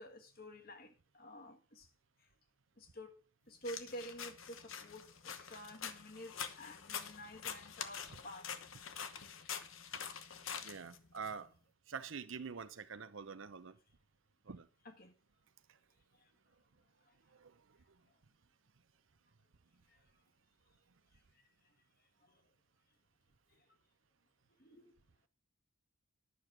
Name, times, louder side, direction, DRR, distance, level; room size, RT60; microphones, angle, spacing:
voice 1, 0.0-1.9 2.8-8.5 14.8-15.1 22.2-22.4 24.6-24.9, equal, 45° left, 1.5 m, -50 dB
sound 1, 3.6-11.3, left 7 dB, 75° left, 1.1 m, -46 dB
voice 2, 10.6-11.5 11.9-13.8 14.5-14.7 17.3-17.5, right 5 dB, 70° right, 0.7 m, -46 dB
11.0 x 6.7 x 5.9 m
head